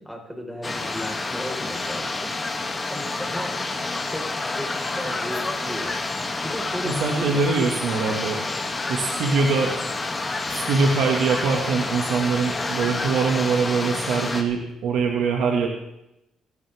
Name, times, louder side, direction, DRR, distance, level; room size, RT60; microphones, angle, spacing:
voice 1, 0.0-2.3 2.9-3.5 4.1-5.9 6.4-7.5, equal, ahead, 0 dB, 5.0 m, -35 dB
sound 1, 0.6-14.4, left 3 dB, 25° left, 2.7 m, -29 dB
voice 2, 6.8-8.4 8.9-9.7 10.5-15.7, right 4 dB, 85° right, 0 dB, 2.2 m, -23 dB
26.0 x 12.0 x 3.7 m, 0.86 s
cardioid pair, 90°, 0 cm